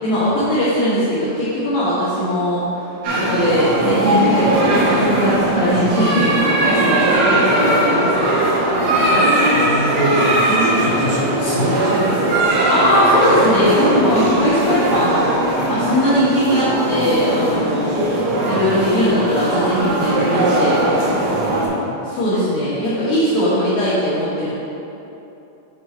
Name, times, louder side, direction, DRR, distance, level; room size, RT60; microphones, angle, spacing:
voice 1, 0.0-8.3 12.7-15.4 15.7-18.0 18.5-20.8 22.0-24.5, equal, 65° left, -12 dB, 2.5 m, -19 dB
sound 1, 3.0-21.7, right 1 dB, 80° right, 1.9 m, -19 dB
voice 2, 9.1-12.4 21.3-21.9, equal, 90° left, -10 dB, 1.4 m, -23 dB
8.5 x 4.5 x 4.3 m, 3.0 s
omnidirectional pair, 6.0 m